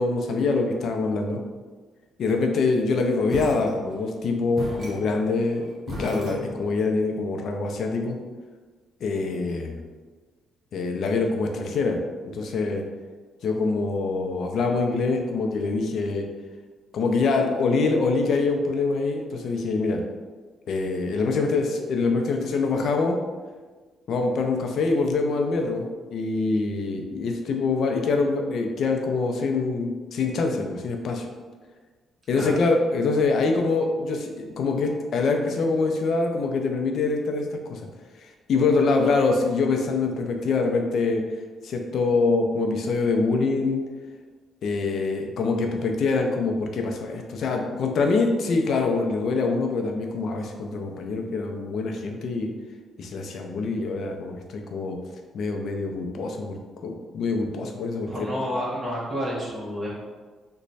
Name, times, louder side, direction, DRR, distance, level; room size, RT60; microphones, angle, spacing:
voice 1, 0.0-1.4 2.2-8.2 9.0-9.8 10.7-12.0 12.2-12.8 13.4-16.3 16.9-20.0 20.7-23.2 24.1-31.3 32.3-37.8 38.5-41.2 41.6-43.8 44.6-52.5 53.0-55.0 55.3-58.3, left 3 dB, 65° left, 3 dB, 0.5 m, -25 dB
sound 1, 3.3-4.2 4.6-6.9, equal, 50° right, 1.0 m, -36 dB
voice 2, 58.1-59.9, equal, 20° right, -7 dB, 1.1 m, -29 dB
3.1 x 2.2 x 4.0 m, 1.4 s
cardioid pair, 90°, 0 cm